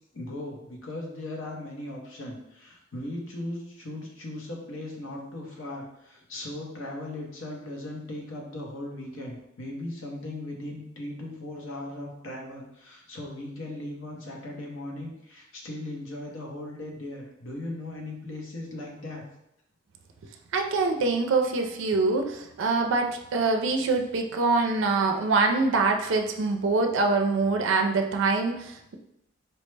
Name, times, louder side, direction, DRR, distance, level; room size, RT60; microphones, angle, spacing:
voice 1, 0.1-19.2, left 1 dB, 80° left, 0 dB, 0.8 m, -38 dB
voice 2, 20.5-29.0, right 3 dB, 65° right, 4 dB, 0.4 m, -24 dB
4.3 x 2.1 x 3.2 m, 0.82 s
head